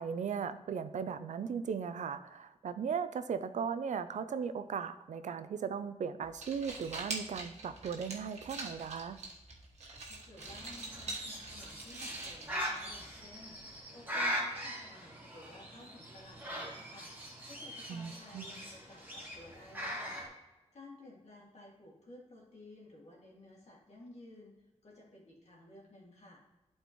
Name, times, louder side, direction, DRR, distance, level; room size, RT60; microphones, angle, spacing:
voice 1, 0.0-9.2 17.9-18.4, right 6 dB, 90° right, 12 dB, 0.4 m, -37 dB
sound 1, 6.2-13.3, right 2 dB, 70° right, 1.4 m, -45 dB
voice 2, 10.1-17.1 17.4-20.2 20.7-24.5 24.8-26.4, left 1 dB, 65° left, -3 dB, 2.2 m, -55 dB
Bird, 10.4-20.3, equal, 15° right, 1.7 m, -41 dB
11.5 x 4.4 x 3.0 m, 1.0 s
wide cardioid pair, 155°, 12 cm